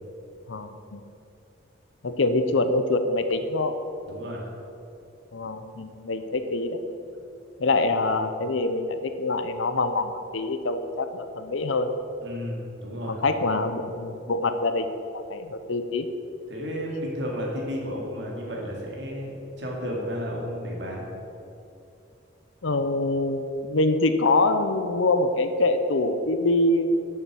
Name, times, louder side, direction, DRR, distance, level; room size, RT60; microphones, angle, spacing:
voice 1, 0.5-1.0 2.0-3.7 5.3-6.8 7.6-11.9 13.1-14.9 15.3-16.1 22.6-27.0, left 2 dB, 85° left, 9 dB, 0.7 m, -25 dB
voice 2, 4.0-4.4 12.2-13.2 16.5-21.1, equal, 65° right, -2 dB, 2.4 m, -32 dB
8.3 x 7.3 x 7.5 m, 2.6 s
head